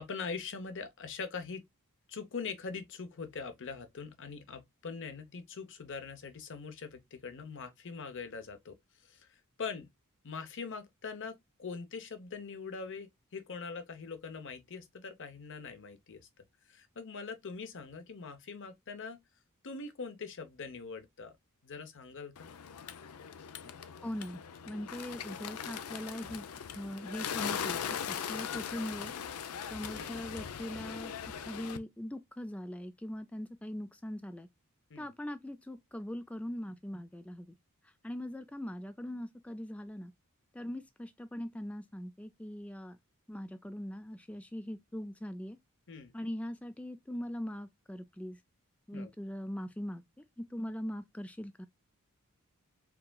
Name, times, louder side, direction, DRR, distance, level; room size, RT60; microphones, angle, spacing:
voice 1, 0.0-1.6 2.1-8.8 9.1-9.9 10.2-16.3 16.7-19.2 19.6-21.4 21.6-22.5 23.6-23.8 29.9-30.2 34.9-35.1 45.9-46.1 48.9-49.1, left 5 dB, 60° left, 0.8 m, -42 dB
Bird, 22.4-31.8, left 8 dB, 85° left, 0.5 m, -40 dB
voice 2, 24.0-24.4 24.7-26.4 26.7-27.8 28.1-29.1 29.7-31.1 31.5-34.5 35.0-37.5 38.0-40.1 40.5-43.0 43.3-45.6 46.1-48.4 48.9-50.0 50.4-51.7, equal, 5° left, 0.3 m, -41 dB
4.6 x 3.7 x 2.2 m
head